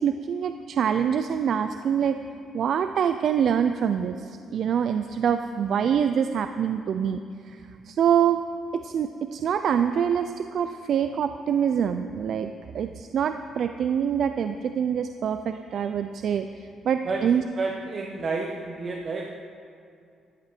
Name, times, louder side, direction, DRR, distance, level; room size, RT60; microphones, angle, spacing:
voice 1, 0.0-2.2 2.5-8.4 8.7-17.4, right 8 dB, 65° right, 9 dB, 0.4 m, -25 dB
voice 2, 17.6-19.3, right 4 dB, 45° right, 1 dB, 1.1 m, -30 dB
13.5 x 11.0 x 4.5 m, 2.5 s
cardioid pair, 90°, 0 cm